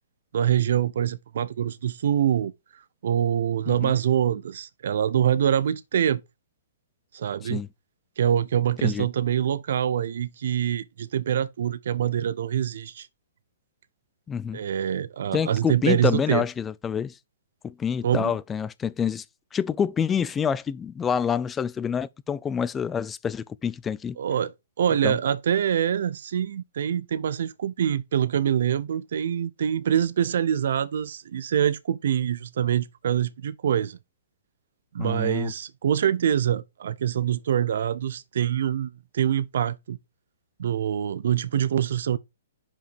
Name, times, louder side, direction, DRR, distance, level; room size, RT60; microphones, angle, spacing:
voice 1, 0.3-6.2 7.1-7.6 8.2-13.1 14.5-16.4 18.0-18.3 24.2-24.5 24.8-34.0 34.9-40.0 40.6-42.2, right 9 dB, 65° right, 0.5 m, -25 dB
voice 2, 14.3-14.6 15.3-17.1 17.6-19.2 19.5-24.2 25.0-25.2 35.0-35.5, left 7 dB, 15° left, 0.4 m, -27 dB
5.3 x 4.8 x 5.1 m
hypercardioid pair, 130°, 0 cm